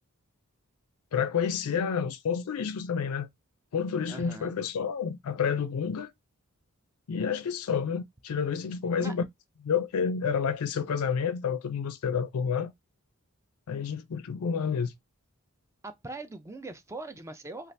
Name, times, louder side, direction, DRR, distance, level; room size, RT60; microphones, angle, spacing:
voice 1, 1.1-3.3 3.7-6.1 7.1-9.2 9.6-12.7 13.7-14.9, left 6 dB, 90° left, 0.4 m, -29 dB
voice 2, 4.1-4.5 9.0-9.1 15.8-17.7, right 2 dB, 15° right, 0.4 m, -41 dB
2.6 x 2.4 x 3.2 m
head